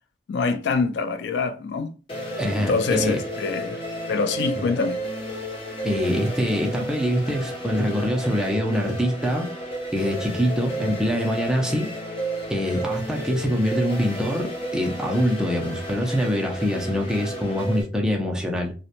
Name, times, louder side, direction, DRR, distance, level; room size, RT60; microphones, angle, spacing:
voice 1, 0.3-1.9 2.5-3.8 4.1-5.0, left 4 dB, 75° left, 0.3 m, -25 dB
sound 1, 2.1-17.8, right 1 dB, 30° left, 0.8 m, -32 dB
voice 2, 2.4-3.2 4.6-4.7 5.8-9.5 9.9-11.9 12.5-18.7, equal, 5° right, 0.5 m, -24 dB
2.8 x 2.1 x 2.5 m
head